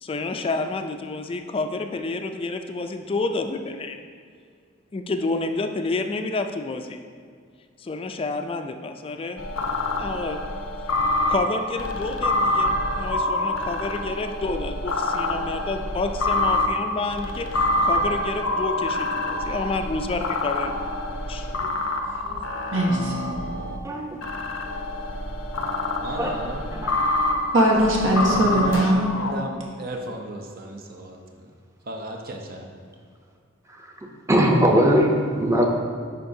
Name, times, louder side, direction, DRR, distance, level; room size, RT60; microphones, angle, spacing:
voice 1, 0.0-4.0 4.9-7.0 7.8-9.4 10.0-10.4 11.3-21.0 21.3-21.5, left 3 dB, 30° left, 6 dB, 0.4 m, -29 dB
sound 1, 9.4-23.8 24.2-29.3, left 2 dB, 90° left, 0.6 m, -26 dB
voice 2, 21.3-22.4 22.7-23.2 23.5-23.6 27.5-29.1, right 1 dB, 75° right, -1 dB, 1.2 m, -22 dB
voice 3, 23.8-24.2 26.2-26.3 26.8-26.9 33.7-33.9 34.3-35.7, equal, 15° right, 1 dB, 0.7 m, -20 dB
voice 4, 26.0-26.7 28.2-28.8 29.1-31.2 31.9-32.7, right 1 dB, 50° right, 2 dB, 0.6 m, -34 dB
10.5 x 4.5 x 2.7 m, 2.1 s
head